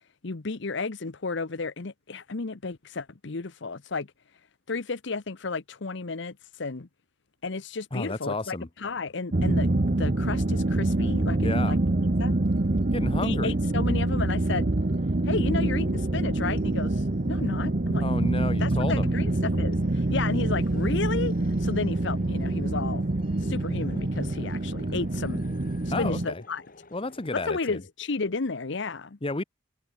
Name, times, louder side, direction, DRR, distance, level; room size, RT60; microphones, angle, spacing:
voice 1, 0.2-4.1 4.7-6.9 7.4-9.7 10.0-11.8 12.2-12.4 13.2-14.7 15.2-18.1 18.6-21.3 21.6-23.0 23.4-25.5 25.9-26.6 27.3-29.2, left 4 dB, 65° left, 0.9 m, -32 dB
voice 2, 7.9-8.7 11.4-11.8 12.9-13.5 18.0-19.1 25.9-26.4 26.9-27.8 29.2-29.4, left 2 dB, 30° left, 1.1 m, -31 dB
sound 1, 9.3-26.3, right 2 dB, 45° right, 1.0 m, -26 dB
sound 2, 12.4-27.4, left 2 dB, 45° left, 3.8 m, -54 dB
head